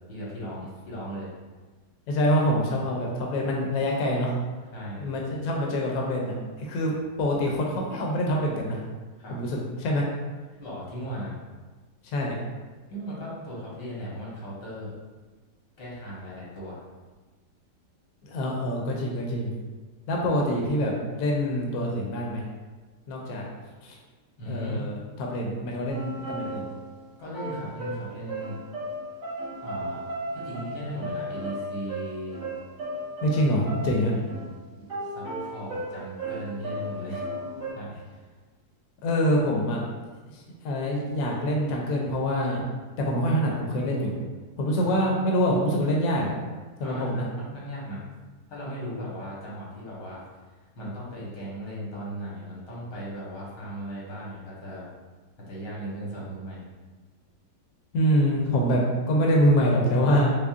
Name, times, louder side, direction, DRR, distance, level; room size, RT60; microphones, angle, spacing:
voice 1, 0.1-1.3 4.7-5.1 9.2-9.4 10.6-11.4 12.9-14.9 15.8-16.8 24.4-24.8 27.2-28.6 29.6-30.0 30.3-32.4 33.8-34.6 35.1-37.2 37.7-38.0 44.8-45.0 46.8-48.0 48.5-50.2 50.8-54.9 55.5-56.7, equal, 85° left, -6 dB, 1.8 m, -37 dB
voice 2, 2.1-4.3 5.0-6.3 6.6-8.8 9.3-10.0 12.1-12.4 18.2-19.5 20.1-22.4 23.1-23.4 23.8-23.9 24.5-26.7 33.2-34.1 39.0-39.8 40.6-42.6 43.0-44.1 44.6-46.3 46.8-47.2 57.9-58.8 59.1-60.3, equal, 70° left, -1 dB, 1.0 m, -25 dB
sound 1, 25.9-27.0 27.3-34.5 34.8-37.7, right 1 dB, 70° right, 2.0 m, -35 dB
6.1 x 2.0 x 2.4 m, 1.3 s
omnidirectional pair, 1.8 m